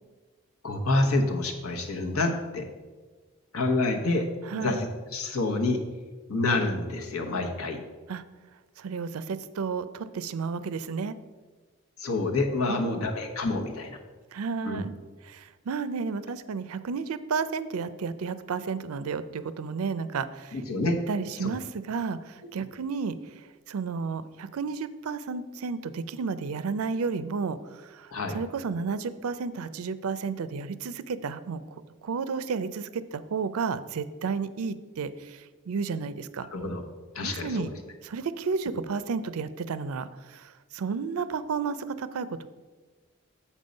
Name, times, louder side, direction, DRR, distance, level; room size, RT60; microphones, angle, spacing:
voice 1, 0.6-2.7 3.5-4.3 4.5-5.8 6.3-7.8 12.0-14.0 14.6-14.8 20.5-21.0 21.4-21.5 28.1-28.4 36.5-36.8 37.1-37.7, left 2 dB, 85° left, 3 dB, 1.1 m, -27 dB
voice 2, 4.5-4.8 8.1-8.2 8.8-11.1 12.7-13.1 14.3-14.9 15.2-20.6 21.1-31.6 32.0-36.5 37.2-37.7 38.0-42.5, right 5 dB, 85° right, 14 dB, 0.4 m, -32 dB
7.3 x 5.4 x 5.2 m, 1.4 s
head